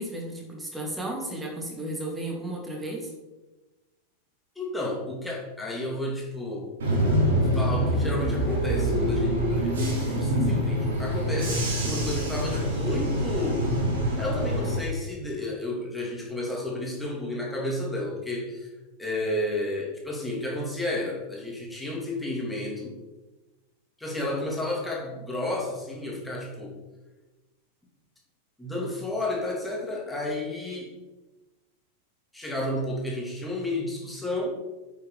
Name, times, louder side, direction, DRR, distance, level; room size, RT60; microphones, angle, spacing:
voice 1, 0.0-3.1, right 1 dB, 10° right, -1 dB, 2.8 m, -34 dB
voice 2, 4.5-6.7 7.5-18.7 19.0-23.0 24.0-26.8 28.6-30.9 32.3-34.5, left 1 dB, 5° left, -2 dB, 3.0 m, -32 dB
Bus / Engine, 6.8-14.8, equal, 65° right, 3.3 m, -25 dB
8.4 x 7.2 x 5.0 m, 1.1 s
figure-of-eight pair, 90°, 0 cm